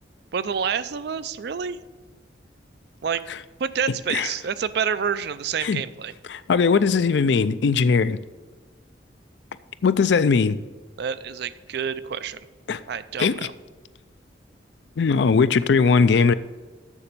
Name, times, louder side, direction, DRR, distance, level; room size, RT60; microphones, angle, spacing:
voice 1, 0.3-1.8 3.0-3.2 3.6-6.1 11.0-12.4 12.9-13.5, right 7 dB, 60° right, 14 dB, 0.4 m, -28 dB
voice 2, 6.3-8.2 9.8-10.6 12.7-12.8 13.2-13.3 15.0-16.3, left 5 dB, 65° left, 14 dB, 0.4 m, -19 dB
7.2 x 6.9 x 6.7 m, 1.3 s
head